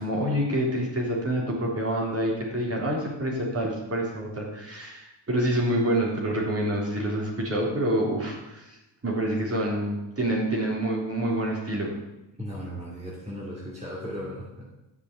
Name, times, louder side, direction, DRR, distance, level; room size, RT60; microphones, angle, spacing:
voice 1, 0.0-8.8 9.0-11.9, right 1 dB, 30° right, -2 dB, 3.7 m, -27 dB
voice 2, 12.4-14.6, equal, 15° right, -5 dB, 2.8 m, -36 dB
11.5 x 6.8 x 7.5 m, 0.97 s
cardioid pair, 120°, 46 cm